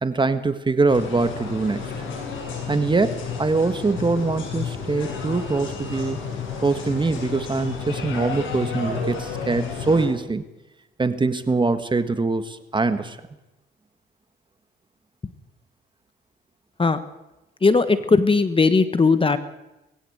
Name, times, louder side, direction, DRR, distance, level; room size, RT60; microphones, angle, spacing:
voice 1, 0.0-1.9 2.7-6.2 6.6-10.4 11.0-13.2, right 3 dB, 25° right, 10 dB, 1.5 m, -23 dB
sound 1, 0.9-10.1, left 5 dB, 80° left, 7.7 m, -31 dB
voice 2, 17.6-19.4, left 4 dB, 25° left, 11 dB, 1.3 m, -18 dB
20.5 x 16.0 x 8.0 m, 0.98 s
cardioid pair, 90°, 20 cm